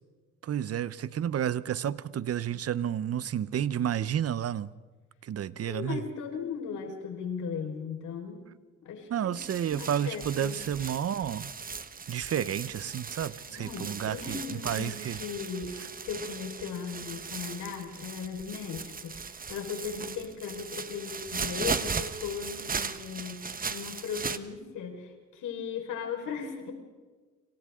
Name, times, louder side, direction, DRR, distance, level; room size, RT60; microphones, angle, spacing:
voice 1, 0.4-4.7 5.2-6.0 9.1-11.5 12.1-15.2, right 9 dB, 50° right, 0.9 m, -31 dB
voice 2, 5.6-8.4 8.8-10.6 13.5-15.7 16.0-26.7, left 6 dB, 80° left, 4.9 m, -37 dB
sound 1, 9.3-24.4, right 5 dB, 30° right, 1.2 m, -38 dB
29.5 x 26.5 x 3.8 m
cardioid pair, 90°, 30 cm